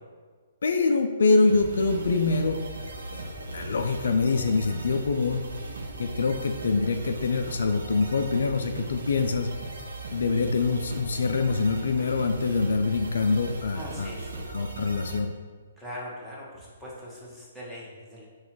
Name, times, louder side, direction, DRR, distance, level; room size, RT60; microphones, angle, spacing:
voice 1, 0.6-2.7 3.1-5.4 6.0-9.5 10.1-14.1 14.5-15.3, left 4 dB, 65° left, 6 dB, 0.3 m, -25 dB
sound 1, 1.5-15.2, right 2 dB, 70° right, 0.6 m, -38 dB
voice 2, 13.7-14.5 15.8-18.3, equal, 5° right, -7 dB, 1.2 m, -41 dB
4.1 x 2.4 x 4.4 m, 1.5 s
figure-of-eight pair, 125°, 0 cm